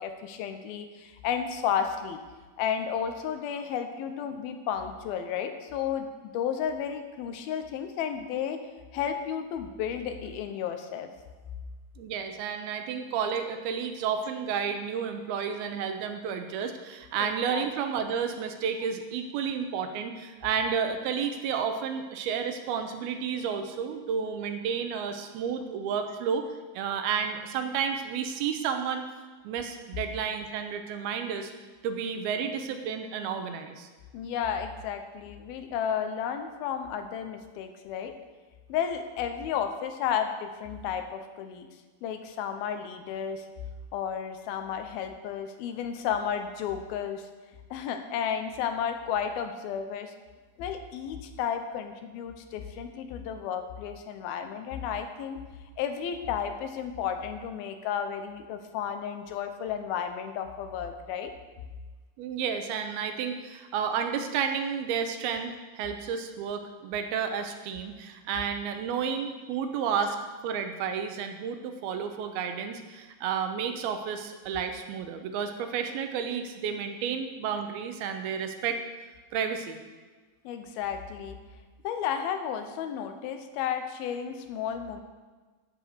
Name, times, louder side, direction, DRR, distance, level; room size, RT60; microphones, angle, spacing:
voice 1, 0.0-2.2 2.6-8.6 8.9-11.1 17.2-17.6 34.1-38.1 38.7-41.7 42.0-43.5 43.9-47.3 47.7-50.1 50.6-55.4 55.8-61.3 80.4-81.4 81.8-85.0, left 8 dB, 80° left, 7 dB, 2.7 m, -32 dB
voice 2, 12.0-26.4 26.7-29.0 29.4-31.5 31.8-33.9 62.2-70.2 70.4-78.8 79.3-79.8, right 7 dB, 85° right, 6 dB, 2.8 m, -31 dB
15.0 x 5.4 x 6.4 m, 1.3 s
omnidirectional pair, 4.4 m